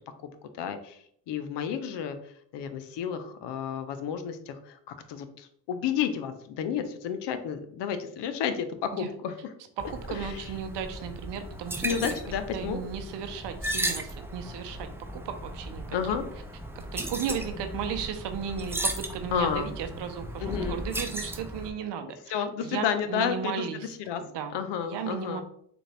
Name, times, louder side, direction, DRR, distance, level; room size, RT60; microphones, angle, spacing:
voice 1, 0.6-1.0 1.3-2.2 2.5-9.5 10.1-10.4 11.8-12.8 15.9-16.2 19.3-19.7 20.4-20.8 22.3-23.6 24.0-24.2 24.5-25.4, left 8 dB, 70° left, 9 dB, 0.6 m, -31 dB
sound 1, 9.8-21.7, right 1 dB, 5° right, 0.5 m, -36 dB
voice 2, 9.8-12.1 12.5-16.0 16.8-23.9 24.2-24.6 24.8-25.4, right 7 dB, 70° right, 8 dB, 0.7 m, -35 dB
3.9 x 2.5 x 3.3 m, 0.65 s
supercardioid pair, 60°, 43 cm